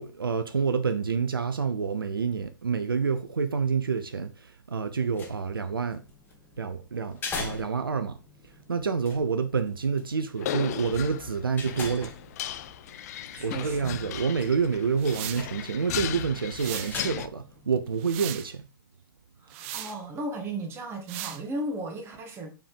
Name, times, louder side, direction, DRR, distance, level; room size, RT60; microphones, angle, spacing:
voice 1, 0.0-6.0 6.6-8.2 8.4-12.1 13.4-18.7, right 5 dB, 80° right, 0.9 m, -28 dB
sound 1, 5.0-18.4, left 4 dB, 15° left, 1.8 m, -44 dB
sound 2, 10.4-17.3, left 12 dB, 45° left, 0.6 m, -36 dB
voice 2, 13.3-14.0 19.4-22.5, right 1 dB, 20° right, 2.2 m, -35 dB
sound 3, 15.0-15.5 16.5-17.0 17.7-18.5 19.5-20.0 21.1-21.4, right 12 dB, 35° right, 0.7 m, -37 dB
7.1 x 4.6 x 5.2 m
figure-of-eight pair, 120°, 12 cm